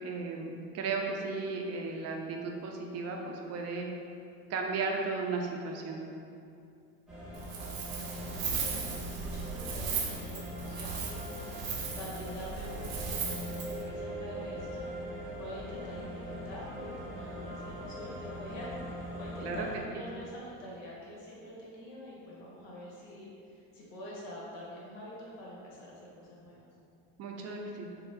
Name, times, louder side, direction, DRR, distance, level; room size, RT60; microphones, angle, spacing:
voice 1, 0.0-3.9 4.5-6.0 19.4-19.7 27.2-28.0, right 4 dB, 45° right, 1 dB, 0.4 m, -35 dB
sound 1, 7.1-19.8, equal, ahead, 0.8 m, -41 dB
Wind, 7.3-13.8, right 5 dB, 85° right, 0.6 m, -37 dB
voice 2, 8.0-26.6, equal, 85° left, -5 dB, 1.0 m, -46 dB
4.1 x 2.1 x 2.5 m, 2.6 s
supercardioid pair, 95°, 39 cm